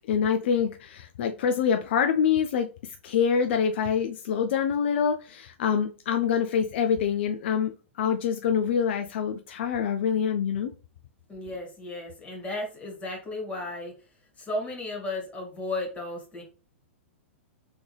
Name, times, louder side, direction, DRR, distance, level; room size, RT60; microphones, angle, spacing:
voice 1, 0.1-10.7, left 7 dB, 60° left, 0.5 m, -26 dB
voice 2, 11.3-13.9 14.4-16.4, left 2 dB, 20° left, 2.1 m, -34 dB
3.6 x 3.5 x 3.2 m
hypercardioid pair, 110°, 7 cm